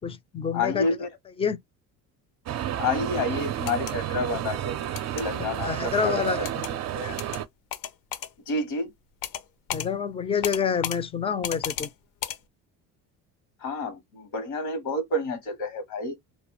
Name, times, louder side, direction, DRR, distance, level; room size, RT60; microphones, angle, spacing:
voice 1, 0.0-0.9 1.4-1.6 5.5-6.4 9.7-11.9, left 6 dB, 15° left, 0.3 m, -27 dB
voice 2, 0.5-1.1 2.8-6.6 6.9-7.2 8.5-8.9 13.6-16.2, left 2 dB, 85° left, 1.0 m, -29 dB
sound 1, 2.5-7.4, right 11 dB, 50° right, 0.4 m, -31 dB
sound 2, 3.5-3.9 5.0-5.2 6.4-6.7 7.2-7.4 7.7-8.3 9.2-9.4 9.7-9.9 10.4-11.0 11.4-11.9 12.2-12.4, left 10 dB, 65° left, 0.5 m, -33 dB
2.2 x 2.2 x 3.0 m
supercardioid pair, 90°, 37 cm